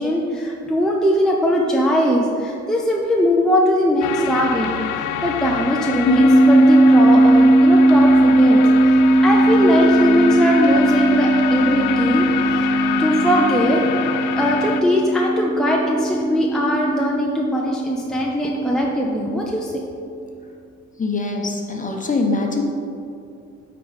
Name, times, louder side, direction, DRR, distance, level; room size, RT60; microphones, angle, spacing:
voice 1, 0.0-4.7 5.0-8.6 9.2-12.3 13.0-19.8, equal, ahead, -2 dB, 0.7 m, -20 dB
sound 1, 4.0-14.8, left 10 dB, 90° left, 0.4 m, -26 dB
sound 2, 6.1-18.8, right 1 dB, 60° left, 1.2 m, -17 dB
voice 2, 21.0-22.6, left 3 dB, 25° left, 1 dB, 1.1 m, -23 dB
8.4 x 4.0 x 5.1 m, 2.6 s
cardioid pair, 90°, 30 cm